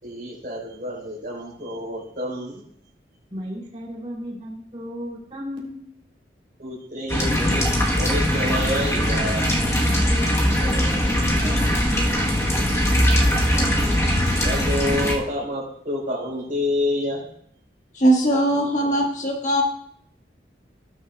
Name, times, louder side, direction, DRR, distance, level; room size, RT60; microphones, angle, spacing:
voice 1, 0.0-2.6 6.6-7.6 8.0-9.5 13.3-13.7 14.4-17.2, left 1 dB, 50° right, -4 dB, 4.5 m, -28 dB
voice 2, 3.3-5.8 10.1-12.5, equal, 30° right, -4 dB, 3.1 m, -35 dB
sound 1, 7.1-15.1, equal, 15° left, 1.2 m, -21 dB
voice 3, 17.9-19.6, right 1 dB, 45° left, 1 dB, 1.4 m, -20 dB
18.0 x 6.4 x 2.3 m, 0.66 s
head